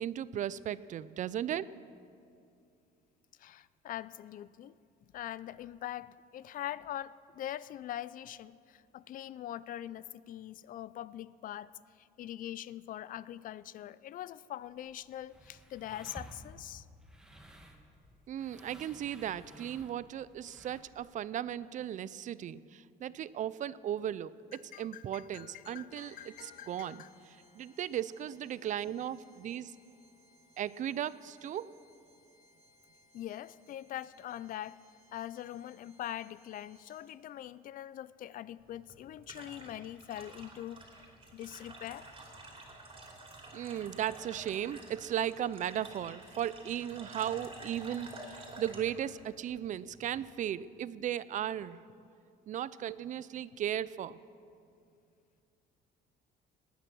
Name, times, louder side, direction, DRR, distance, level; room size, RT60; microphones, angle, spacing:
voice 1, 0.0-1.7 18.3-27.0 27.6-29.7 30.6-31.7 43.5-51.8 52.5-54.2, right 10 dB, 50° right, 18 dB, 0.4 m, -36 dB
voice 2, 3.4-4.7 5.1-11.7 12.0-16.9 24.5-27.1 33.1-34.8 35.1-42.1, left 12 dB, 55° left, 19 dB, 0.4 m, -43 dB
sound 1, 14.7-21.0, right 1 dB, 5° right, 1.5 m, -54 dB
sound 2, 25.9-37.3, left 1 dB, 75° left, 2.8 m, -64 dB
sound 3, 38.6-50.3, right 2 dB, 30° right, 3.0 m, -50 dB
18.5 x 9.4 x 6.1 m, 2.4 s
cardioid pair, 110°, 17 cm